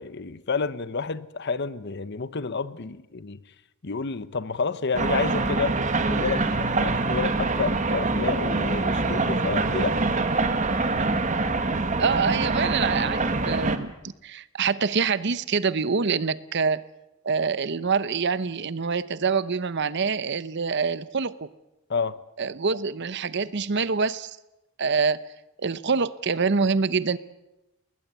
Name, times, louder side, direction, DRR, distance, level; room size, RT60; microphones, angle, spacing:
voice 1, 0.0-3.4 3.8-5.7 6.1-10.0 21.9-22.2, left 4 dB, 55° left, 0.8 m, -29 dB
sound 1, 4.9-13.8, right 3 dB, 35° right, 1.6 m, -25 dB
voice 2, 12.0-13.9 14.2-16.8 17.2-21.5 22.4-24.3 24.8-25.2 25.6-27.2, right 5 dB, 55° right, 0.8 m, -25 dB
21.0 x 19.5 x 8.2 m
head